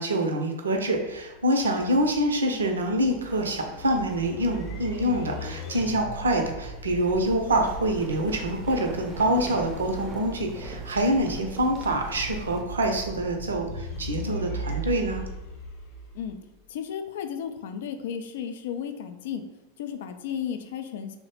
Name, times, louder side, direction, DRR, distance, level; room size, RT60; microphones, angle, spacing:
voice 1, 0.0-15.2, right 1 dB, 70° right, 3 dB, 0.5 m, -26 dB
sound 1, 0.8-16.7, right 1 dB, 30° left, 0.8 m, -39 dB
sound 2, 3.3-4.8 5.1-5.2 6.6-12.6, right 3 dB, 20° right, 0.5 m, -43 dB
voice 2, 16.7-19.5 19.8-21.2, left 8 dB, 55° left, 7 dB, 0.3 m, -34 dB
3.0 x 2.1 x 4.1 m, 1.0 s
figure-of-eight pair, 90°, 0 cm